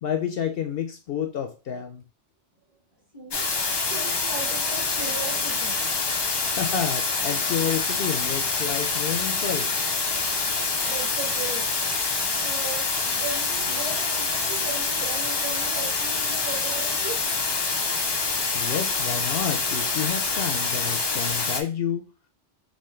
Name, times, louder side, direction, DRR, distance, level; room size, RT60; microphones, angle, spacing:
voice 1, 0.0-2.0 6.4-9.7 18.5-22.1, left 8 dB, 65° left, 6 dB, 0.7 m, -30 dB
voice 2, 3.1-3.6 3.9-5.8 10.8-11.8 12.4-17.3, right 4 dB, 25° right, -1 dB, 1.3 m, -37 dB
sound 1, 3.3-21.6, left 4 dB, 45° left, 0.3 m, -26 dB
3.5 x 2.8 x 4.3 m, 0.33 s
omnidirectional pair, 1.1 m